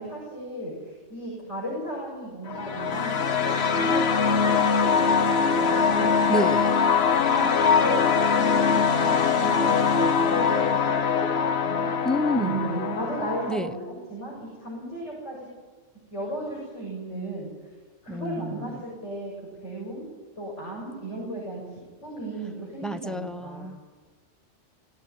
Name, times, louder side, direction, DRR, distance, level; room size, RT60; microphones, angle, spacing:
voice 1, 0.0-4.8 5.1-6.6 7.2-7.5 7.8-9.8 10.1-10.7 11.0-11.9 12.3-15.5 16.1-17.5 18.0-19.3 19.6-20.1 20.4-21.6 22.0-23.7, right 1 dB, 80° left, -4 dB, 7.0 m, -35 dB
sound 1, 2.5-13.5, left 6 dB, 65° left, 1.2 m, -22 dB
voice 2, 6.3-6.7 12.0-12.6 13.5-13.7 18.1-18.8 22.8-23.8, equal, ahead, 8 dB, 0.7 m, -29 dB
20.0 x 16.0 x 9.4 m, 1.4 s
omnidirectional pair, 1.2 m